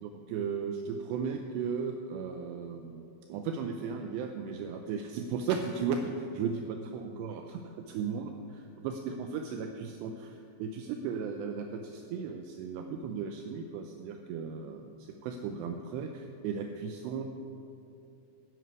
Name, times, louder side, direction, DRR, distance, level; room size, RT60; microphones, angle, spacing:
voice 1, 0.0-3.0 3.3-7.6 7.9-17.3, right 6 dB, 80° right, 4 dB, 2.6 m, -36 dB
15.5 x 10.0 x 4.7 m, 2.7 s
omnidirectional pair, 5.3 m